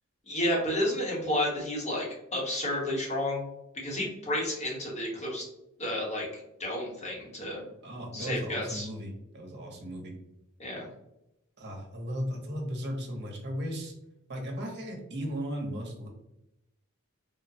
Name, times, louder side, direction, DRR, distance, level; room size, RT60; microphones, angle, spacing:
voice 1, 0.3-3.4 3.7-5.5 5.8-7.6 8.1-8.9 10.6-10.9, left 1 dB, 30° left, -3 dB, 1.0 m, -31 dB
voice 2, 7.8-10.1 11.6-13.9 14.3-16.1, equal, 55° right, 1 dB, 0.8 m, -36 dB
3.5 x 2.1 x 2.7 m, 0.86 s
head